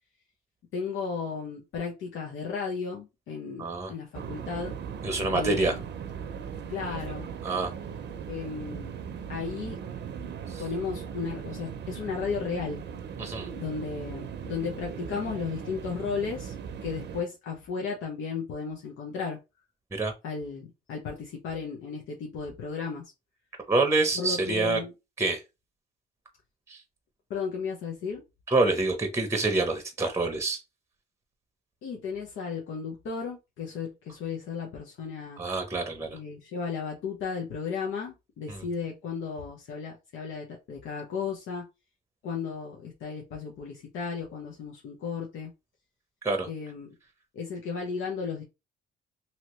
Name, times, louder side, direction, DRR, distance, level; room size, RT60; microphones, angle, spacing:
voice 1, 0.7-4.8 5.3-5.8 6.7-7.3 8.3-9.0 9.3-9.8 10.6-12.8 13.5-16.5 16.8-19.4 20.2-23.0 24.1-24.9 27.3-28.2 31.8-35.4 36.1-41.7 42.2-45.5 46.5-46.9 47.3-48.4, left 5 dB, 80° left, 0.8 m, -34 dB
voice 2, 3.6-3.9 5.0-5.7 7.4-7.7 10.5-10.6 13.2-13.5 19.9-20.1 23.7-24.8 25.2-25.4 26.7-26.8 28.5-30.6 35.4-36.2 38.5-38.6 46.2-46.5, right 3 dB, 15° right, 0.7 m, -26 dB
sound 1, 4.1-17.2, right 7 dB, 60° right, 0.6 m, -38 dB
2.8 x 2.8 x 3.0 m
cardioid pair, 90°, 20 cm